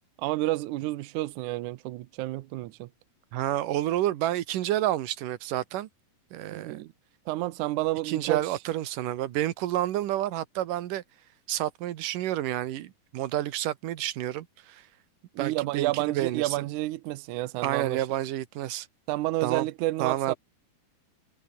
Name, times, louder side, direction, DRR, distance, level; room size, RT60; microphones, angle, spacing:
voice 1, 0.2-2.9 6.5-6.9 7.3-8.4 15.3-18.1 19.1-20.3, right 17 dB, 85° right, 1.7 m, -30 dB
voice 2, 3.3-5.9 6.3-6.8 8.0-11.0 11.5-14.8 15.4-16.7 17.6-18.9 19.4-19.7 20.0-20.4, right 13 dB, 65° right, 2.5 m, -29 dB
omnidirectional pair, 4.5 m